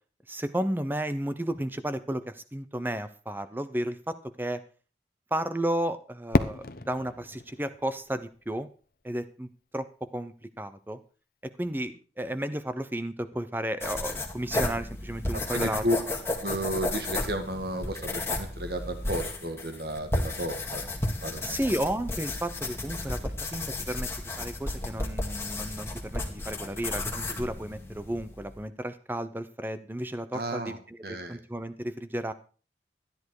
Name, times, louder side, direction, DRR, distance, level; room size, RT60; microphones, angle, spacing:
voice 1, 0.3-4.6 5.3-8.7 9.0-11.0 11.4-15.8 21.4-32.3, right 1 dB, 10° right, 12 dB, 0.8 m, -33 dB
Fireworks, 6.3-9.2, left 2 dB, 55° left, 0.9 m, -31 dB
sound 1, 13.8-28.6, left 2 dB, 15° left, 2.0 m, -33 dB
voice 2, 15.5-16.0 16.4-20.8 21.2-21.6 30.3-30.8 31.0-31.4, equal, 60° right, 6 dB, 1.8 m, -32 dB
13.0 x 10.5 x 4.8 m, 0.38 s
head